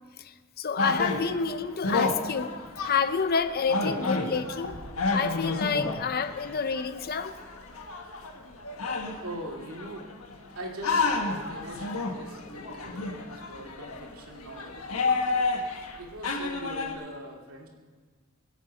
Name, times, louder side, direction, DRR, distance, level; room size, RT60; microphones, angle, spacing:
voice 1, 0.2-2.5 2.8-4.8 5.1-7.4, left 5 dB, 45° left, 11 dB, 0.7 m, -28 dB
sound 1, 0.8-10.4 10.8-16.0 16.2-16.9, left 3 dB, 80° left, 1.5 m, -31 dB
voice 2, 9.2-10.1 10.5-14.9 16.0-17.7, right 1 dB, 80° right, 0 dB, 2.5 m, -42 dB
22.0 x 8.2 x 5.5 m, 1.5 s
head